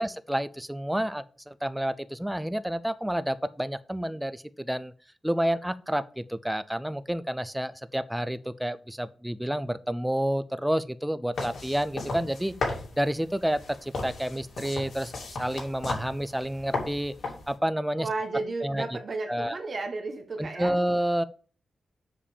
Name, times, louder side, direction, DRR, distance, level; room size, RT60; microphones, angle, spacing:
voice 1, 0.0-4.9 5.2-12.5 13.0-15.1 15.4-17.1 17.5-18.1 18.6-19.0 19.3-19.6 20.4-21.2, equal, 5° right, 0.4 m, -29 dB
sound 1, 11.3-17.6, left 3 dB, 60° left, 2.6 m, -36 dB
voice 2, 18.0-20.7, right 3 dB, 40° right, 1.4 m, -33 dB
7.0 x 5.0 x 7.1 m
wide cardioid pair, 175°, 0 cm